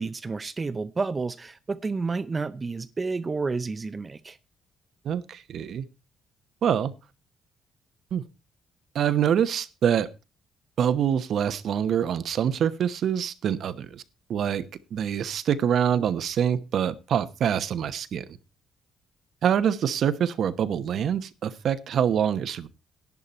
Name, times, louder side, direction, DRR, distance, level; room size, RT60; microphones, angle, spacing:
voice 1, 0.0-4.4, right 4 dB, 30° right, 0.6 m, -30 dB
voice 2, 5.0-5.9 6.6-6.9 8.1-8.2 8.9-10.1 10.8-14.0 14.3-14.6 14.9-18.2 19.4-22.7, right 8 dB, 65° right, 1.0 m, -25 dB
11.0 x 11.0 x 4.3 m
cardioid pair, 90°, 0 cm